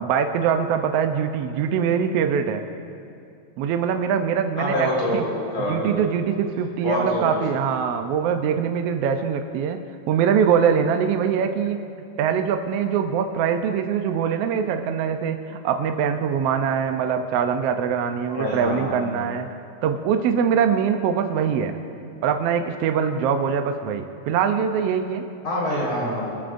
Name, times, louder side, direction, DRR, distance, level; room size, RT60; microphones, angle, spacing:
voice 1, 0.0-2.6 3.6-5.2 5.7-9.8 10.1-11.8 12.2-19.5 19.8-21.7 22.2-25.2, right 7 dB, 75° right, 6 dB, 1.5 m, -23 dB
voice 2, 4.6-5.9 6.8-7.2 18.3-19.2 25.4-26.3, equal, 60° left, -5 dB, 5.5 m, -26 dB
23.5 x 14.0 x 2.6 m, 2.5 s
omnidirectional pair, 3.4 m